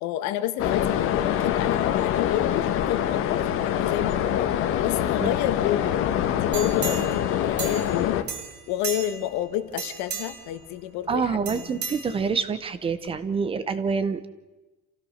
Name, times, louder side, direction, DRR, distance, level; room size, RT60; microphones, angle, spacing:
voice 1, 0.0-4.5 4.8-6.0 6.3-8.2 8.7-11.8, left 12 dB, 60° left, 10 dB, 1.6 m, -30 dB
sound 1, 0.6-8.2, left 10 dB, 40° left, 1.3 m, -25 dB
sound 2, 6.5-8.0 8.3-9.3 9.7-10.5 11.5-12.6 13.0-13.1, right 6 dB, 35° right, 2.9 m, -35 dB
voice 2, 11.1-14.3, right 5 dB, 15° right, 13 dB, 0.8 m, -26 dB
27.5 x 16.0 x 6.5 m, 1.1 s
cardioid pair, 175°, 32 cm